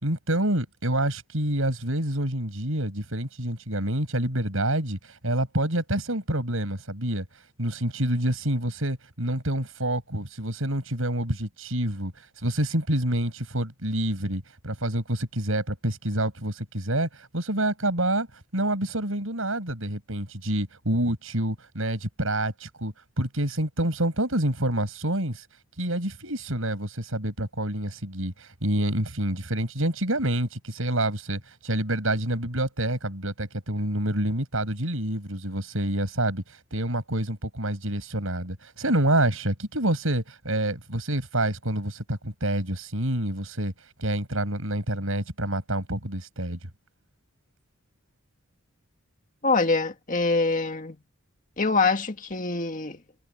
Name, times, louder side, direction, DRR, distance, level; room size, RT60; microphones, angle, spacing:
voice 1, 0.0-7.2 7.6-12.1 12.4-18.3 18.5-25.4 25.8-36.4 36.7-43.7 44.0-46.6, right 1 dB, 70° right, 6.4 m, -27 dB
voice 2, 49.4-51.0 51.6-53.0, left 3 dB, 40° left, 1.9 m, -24 dB
head